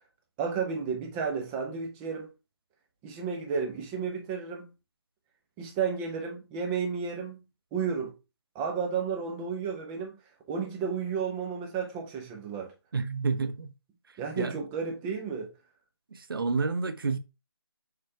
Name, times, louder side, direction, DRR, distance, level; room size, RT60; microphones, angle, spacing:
voice 1, 0.4-2.3 3.0-4.7 5.6-7.4 7.7-8.1 8.5-10.1 10.5-12.7 14.2-15.5, right 6 dB, 5° right, 0.3 m, -32 dB
voice 2, 12.9-13.7 14.4-14.5 16.1-17.2, right 4 dB, 60° right, 1.1 m, -29 dB
6.9 x 3.2 x 4.7 m
figure-of-eight pair, 165°, 14 cm